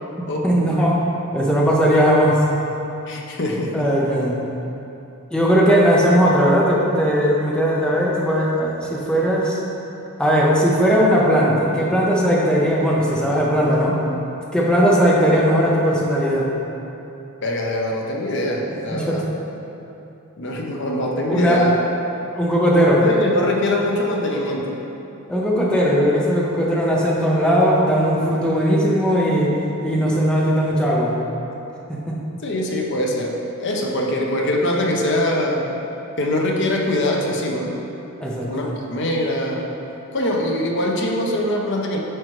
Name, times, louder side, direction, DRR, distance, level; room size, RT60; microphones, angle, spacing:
voice 1, 0.2-1.0 1.3-2.4 3.7-4.4 5.3-9.6 10.2-14.0 14.5-16.5 18.9-19.2 21.3-21.6 22.3-23.0 25.3-29.5 29.8-31.1 31.9-32.2 38.2-38.5, equal, 5° left, -5 dB, 0.9 m, -18 dB
voice 2, 3.1-3.9 17.4-19.3 20.4-21.8 22.7-24.8 32.4-35.6 36.2-37.7 38.5-39.7 40.1-42.0, left 1 dB, 60° left, -1 dB, 0.8 m, -23 dB
8.9 x 4.8 x 3.2 m, 2.9 s
head